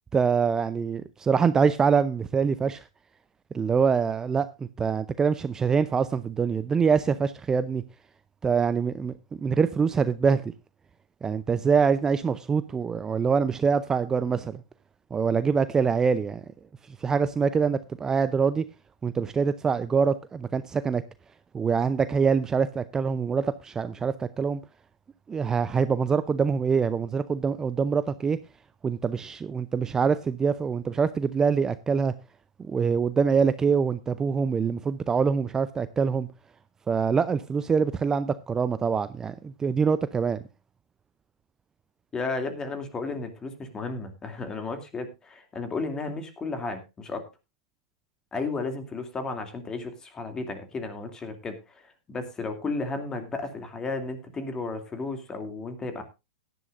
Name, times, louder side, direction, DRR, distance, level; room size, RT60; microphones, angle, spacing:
voice 1, 0.1-2.9 3.5-7.8 8.4-10.5 11.2-14.6 15.1-16.4 17.0-18.6 19.0-21.0 21.5-24.6 25.3-28.4 28.8-32.1 32.6-36.3 36.9-40.4, right 6 dB, 20° right, 0.6 m, -24 dB
voice 2, 42.1-47.3 48.3-56.0, left 3 dB, 20° left, 2.6 m, -33 dB
17.0 x 11.0 x 2.6 m
hypercardioid pair, 100°, 3 cm